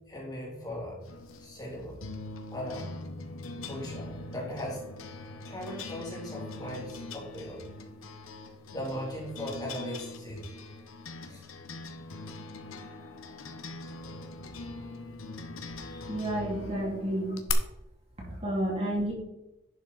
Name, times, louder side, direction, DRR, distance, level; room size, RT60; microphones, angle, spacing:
voice 1, 0.1-1.0 1.4-2.0 2.5-2.9 3.6-4.8 5.5-7.6 8.7-10.5 11.3-11.5 15.8-16.1 16.8-16.9, equal, 20° left, -4 dB, 3.3 m, -38 dB
sound 1, 1.1-17.5, left 3 dB, 85° left, 1.1 m, -42 dB
voice 2, 16.1-17.3 18.3-19.1, right 1 dB, 30° right, -3 dB, 2.8 m, -30 dB
11.0 x 6.3 x 4.2 m, 0.89 s
head